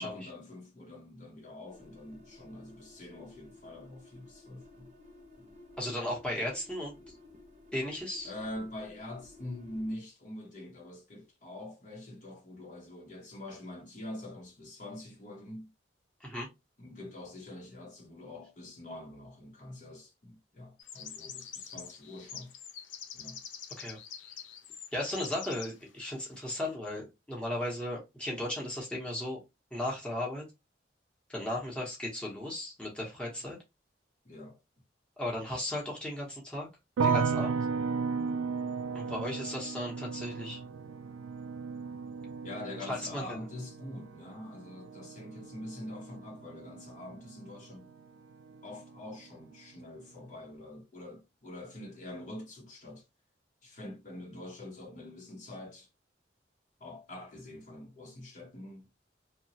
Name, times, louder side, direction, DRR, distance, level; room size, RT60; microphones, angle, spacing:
voice 1, 0.0-4.9 5.4-5.5 8.2-15.7 16.8-22.5 23.1-23.4 34.2-34.6 38.1-38.7 42.4-47.9 48.6-53.0 53.6-55.9 56.8-59.0, left 1 dB, 40° left, 0.7 m, -45 dB
sound 1, 1.7-10.0, left 2 dB, 40° right, 0.7 m, -55 dB
voice 2, 5.8-7.0 7.7-8.3 16.2-16.5 23.8-24.0 24.9-29.4 29.7-30.4 31.3-33.6 35.2-36.7 37.0-37.6 38.9-40.6 42.9-43.4, left 1 dB, 5° left, 0.8 m, -36 dB
sound 2, 20.8-25.7, left 8 dB, 80° left, 0.5 m, -45 dB
sound 3, 37.0-48.0 48.3-49.1, right 5 dB, 90° right, 0.3 m, -35 dB
2.9 x 2.1 x 2.7 m
head